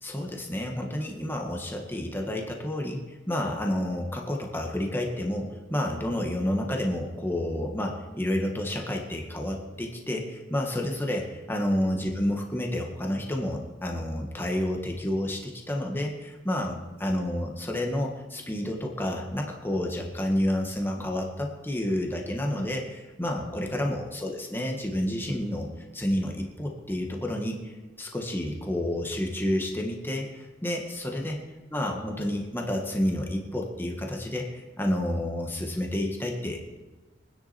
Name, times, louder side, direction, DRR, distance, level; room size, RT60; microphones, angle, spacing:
voice 1, 0.0-27.7 28.0-31.4 31.7-36.6, left 1 dB, 10° left, 1 dB, 1.8 m, -30 dB
23.5 x 10.0 x 4.4 m, 1.2 s
head